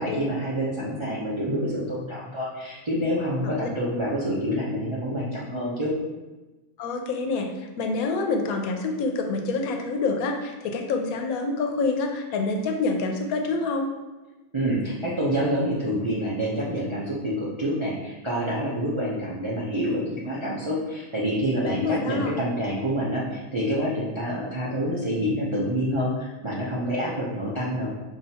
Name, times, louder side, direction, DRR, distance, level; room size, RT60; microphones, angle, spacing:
voice 1, 0.0-5.9 14.5-27.9, equal, 45° right, -7 dB, 0.3 m, -27 dB
voice 2, 6.8-13.9 21.6-22.3, left 3 dB, 85° left, 3 dB, 1.1 m, -27 dB
5.5 x 2.7 x 2.7 m, 1.1 s
omnidirectional pair, 1.5 m